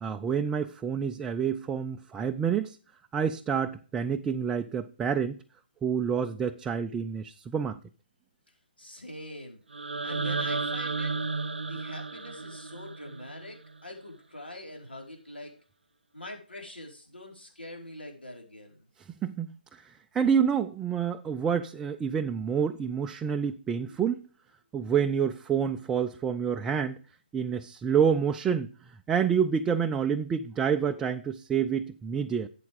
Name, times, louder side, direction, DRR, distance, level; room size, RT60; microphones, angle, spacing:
voice 1, 0.0-2.8 3.1-5.4 5.8-7.8 19.2-24.2 24.7-27.0 27.3-28.7 29.1-32.5, right 7 dB, 10° right, 5 dB, 0.4 m, -28 dB
voice 2, 8.8-9.6 10.0-11.1 11.6-15.5 16.1-18.9 23.8-24.0, left 1 dB, 80° left, 1 dB, 4.8 m, -44 dB
sound 1, 9.7-13.8, right 4 dB, 75° right, 0.5 m, -33 dB
11.5 x 8.3 x 3.6 m, 0.39 s
figure-of-eight pair, 145°, 5 cm